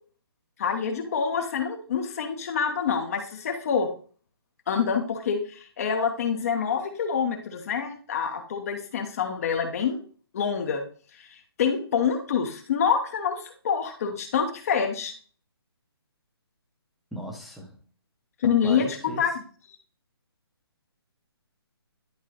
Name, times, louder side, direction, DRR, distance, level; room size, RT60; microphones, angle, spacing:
voice 1, 0.6-3.9 4.7-10.0 10.3-10.8 11.2-15.1 18.4-19.3, left 7 dB, 35° left, 4 dB, 0.9 m, -26 dB
voice 2, 17.1-17.8 18.4-19.2, equal, ahead, 0 dB, 0.9 m, -38 dB
10.5 x 3.6 x 3.1 m, 0.41 s
hypercardioid pair, 165°, 13 cm